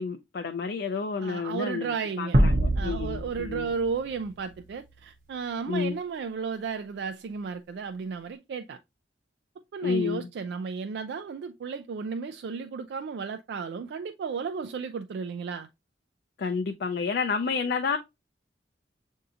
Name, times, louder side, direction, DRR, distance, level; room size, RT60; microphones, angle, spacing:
voice 1, 0.0-3.7 5.7-6.0 9.8-10.3 16.4-18.0, left 5 dB, 60° left, 0.4 m, -30 dB
voice 2, 1.2-2.4 2.8-8.8 9.7-15.7, right 5 dB, 65° right, 0.3 m, -34 dB
sound 1, 2.3-4.8, right 1 dB, 50° right, 0.7 m, -25 dB
6.6 x 2.7 x 2.4 m
head